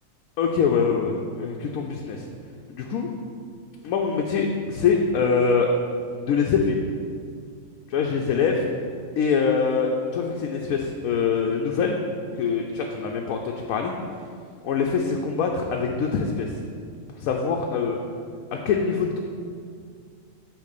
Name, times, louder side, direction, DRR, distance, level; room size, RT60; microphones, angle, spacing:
voice 1, 0.4-2.2 2.7-3.1 3.8-5.7 6.1-6.8 7.9-8.6 9.2-12.0 12.4-13.9 14.6-16.5 17.2-18.0 18.5-19.2, left 5 dB, 90° left, 1 dB, 1.0 m, -24 dB
8.3 x 3.3 x 6.6 m, 2.2 s
omnidirectional pair, 1.4 m